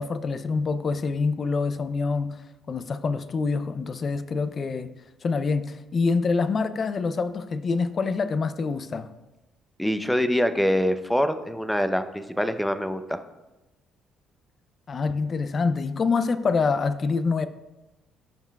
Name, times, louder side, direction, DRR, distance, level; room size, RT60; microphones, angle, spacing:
voice 1, 0.0-4.9 5.2-9.1 14.9-17.5, left 4 dB, 45° left, 12 dB, 0.5 m, -26 dB
voice 2, 9.8-13.2, equal, 5° left, 9 dB, 0.7 m, -24 dB
14.0 x 5.6 x 2.3 m, 1.0 s
supercardioid pair, 65°, 0 cm